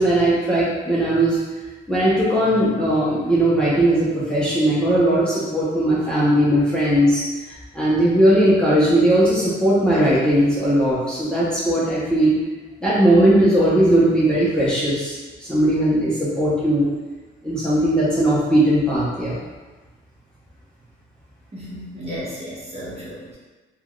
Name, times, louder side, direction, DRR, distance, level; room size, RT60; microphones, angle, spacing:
voice 1, 0.0-1.4 1.9-7.2 7.7-12.3 12.8-15.2 15.5-16.9 17.4-19.4, right 1 dB, 5° left, -9 dB, 0.8 m, -18 dB
voice 2, 21.5-23.4, equal, 30° right, -7 dB, 1.1 m, -34 dB
3.3 x 2.4 x 2.3 m, 1.2 s
cardioid pair, 90°, 20 cm